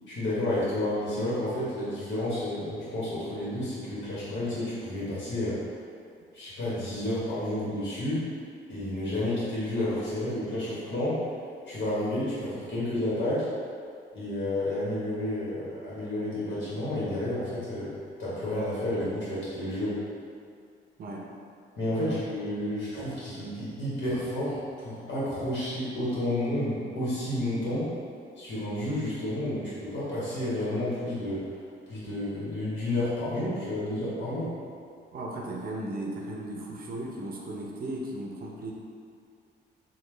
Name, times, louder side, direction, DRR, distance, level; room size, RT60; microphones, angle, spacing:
voice 1, 0.1-5.6 6.3-8.3 8.7-11.3 11.6-13.5 14.1-20.0 21.8-27.9 28.4-31.5 31.9-34.5, left 1 dB, 65° left, -9 dB, 1.4 m, -31 dB
voice 2, 35.1-38.7, right 1 dB, 45° right, -2 dB, 0.6 m, -36 dB
3.2 x 2.3 x 3.2 m, 2.3 s
cardioid pair, 90°, 20 cm